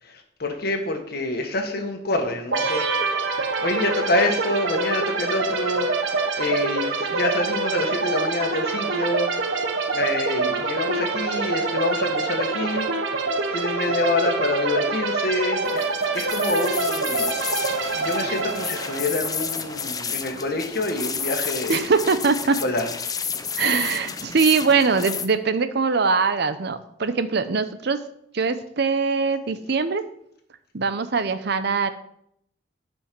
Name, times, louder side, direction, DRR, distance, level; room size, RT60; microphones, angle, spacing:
voice 1, 0.0-3.1 3.6-5.9 6.3-9.6 9.9-12.9 13.5-15.8 16.1-17.3 18.0-21.9 22.4-22.9, left 2 dB, 60° left, 4 dB, 1.5 m, -27 dB
sound 1, 2.5-20.1, right 3 dB, 85° right, 1.0 m, -26 dB
sound 2, 15.7-25.3, left 6 dB, 20° left, 0.5 m, -31 dB
voice 2, 21.7-22.6 23.6-28.0 28.3-30.0 30.7-31.9, right 4 dB, 65° right, 11 dB, 0.7 m, -22 dB
10.5 x 5.2 x 5.3 m, 0.72 s
head